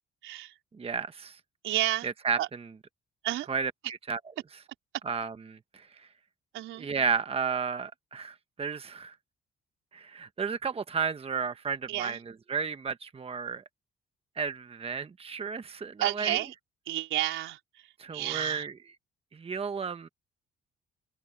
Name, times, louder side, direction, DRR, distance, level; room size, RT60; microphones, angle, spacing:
voice 1, 0.2-0.5 1.6-2.1 2.4-2.5 3.2-3.5 6.5-6.9 11.9-12.2 16.0-16.5 16.9-17.6 18.1-18.7, right 14 dB, 90° right, 4.4 m, -30 dB
voice 2, 0.8-1.4 2.0-2.7 3.5-4.2 5.0-6.1 6.8-9.1 9.9-13.6 14.4-16.4 18.0-18.8 19.3-20.1, right 5 dB, 30° right, 1.1 m, -33 dB
open air
cardioid pair, 90°, 20 cm